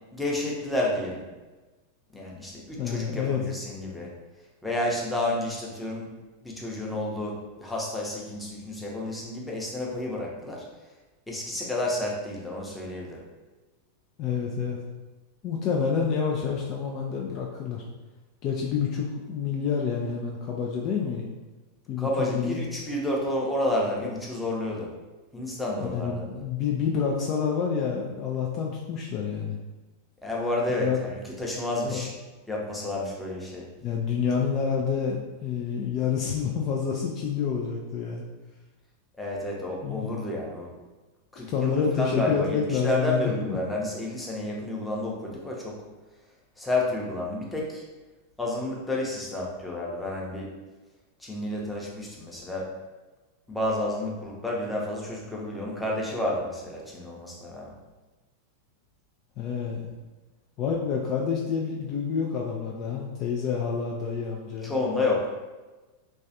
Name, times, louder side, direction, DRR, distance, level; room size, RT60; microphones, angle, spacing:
voice 1, 0.1-1.2 2.1-4.1 4.6-6.1 6.4-10.6 11.3-13.2 22.0-24.9 25.3-26.3 30.2-32.1 32.5-33.6 39.2-40.7 41.3-45.8 46.6-47.8 48.4-50.5 51.2-52.7 53.5-57.7 64.6-65.3, left 1 dB, 5° left, -3 dB, 0.7 m, -30 dB
voice 2, 2.8-3.4 14.2-14.8 15.4-17.8 18.4-21.3 21.9-22.5 25.9-29.6 30.8-31.0 31.8-32.0 33.8-38.2 39.8-40.1 41.5-43.6 59.4-60.0 60.6-64.7, left 6 dB, 35° left, -1 dB, 0.3 m, -28 dB
3.1 x 2.3 x 2.7 m, 1.2 s
figure-of-eight pair, 90°, 0 cm